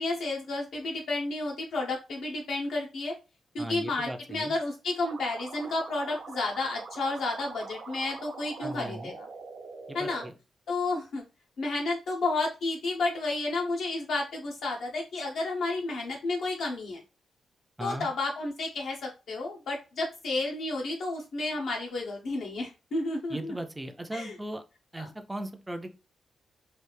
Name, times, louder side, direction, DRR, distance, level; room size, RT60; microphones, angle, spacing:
voice 1, 0.0-3.2 3.5-9.3 9.9-10.2 10.7-11.2 11.6-17.0 17.8-23.5 24.1-24.3 25.0-25.1, left 2 dB, 70° left, 0 dB, 0.7 m, -31 dB
voice 2, 3.6-4.5 8.6-9.1 9.9-10.3 17.8-18.1 23.3-24.6 24.9-26.0, right 1 dB, 10° right, 6 dB, 0.4 m, -37 dB
sound 1, 5.0-10.3, right 4 dB, 55° right, 0.6 m, -44 dB
3.2 x 2.4 x 3.2 m, 0.29 s
wide cardioid pair, 150°, 0 cm